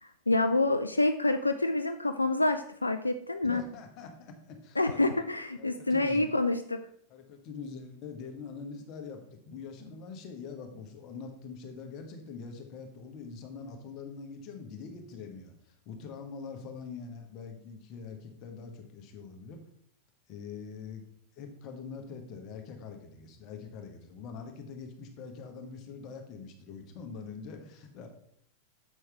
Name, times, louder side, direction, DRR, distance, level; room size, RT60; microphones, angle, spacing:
voice 1, 0.3-3.6 4.8-6.8, left 2 dB, 80° left, 8 dB, 0.3 m, -27 dB
voice 2, 3.4-5.0 5.6-6.3 7.1-9.2 9.5-19.6 20.3-21.0 21.4-28.1, left 5 dB, 40° left, 4 dB, 1.2 m, -44 dB
7.2 x 6.2 x 3.4 m, 0.64 s
figure-of-eight pair, 90°, 0 cm